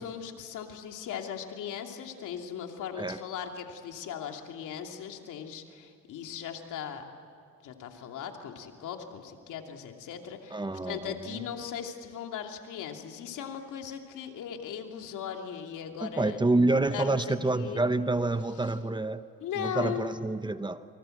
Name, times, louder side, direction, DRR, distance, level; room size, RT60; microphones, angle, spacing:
voice 1, 0.0-7.0 7.6-16.4 16.9-17.8 18.6-18.7 19.4-20.1, left 8 dB, 85° left, 3 dB, 2.8 m, -38 dB
voice 2, 10.5-11.4 16.0-19.2 19.6-20.8, right 2 dB, 15° right, 11 dB, 1.0 m, -28 dB
28.0 x 25.0 x 7.9 m, 2.4 s
cardioid pair, 90°, 30 cm